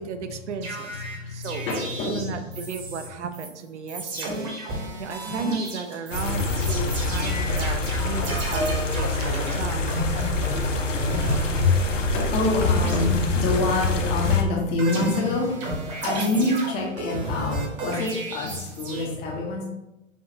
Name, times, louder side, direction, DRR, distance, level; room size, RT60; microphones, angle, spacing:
voice 1, 0.0-1.7 2.0-4.7 5.0-10.0 16.2-16.6, right 6 dB, 60° right, 8 dB, 0.6 m, -35 dB
sound 1, 0.6-3.1 3.3-3.5 3.9-12.1 12.3-14.0 14.2-19.1, right 1 dB, 30° right, 1.0 m, -32 dB
voice 2, 1.0-2.3 6.8-8.7 9.4-9.6 11.4-19.6, left 3 dB, 15° left, -1 dB, 0.5 m, -26 dB
sound 2, 6.1-14.4, left 2 dB, 70° left, 0.7 m, -26 dB
5.7 x 2.3 x 2.7 m, 0.95 s
figure-of-eight pair, 115°, 39 cm